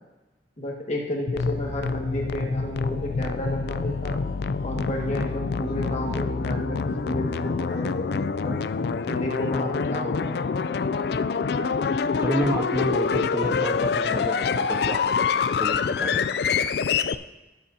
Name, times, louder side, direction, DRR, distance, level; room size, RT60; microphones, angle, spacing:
voice 1, 0.6-4.2 4.6-8.6 9.1-10.5, equal, 40° left, 0 dB, 1.8 m, -32 dB
sound 1, 1.3-17.2, left 5 dB, 60° left, 0.4 m, -26 dB
voice 2, 12.2-16.2, right 1 dB, 10° right, 3 dB, 0.5 m, -30 dB
18.5 x 7.8 x 2.8 m, 1.1 s
head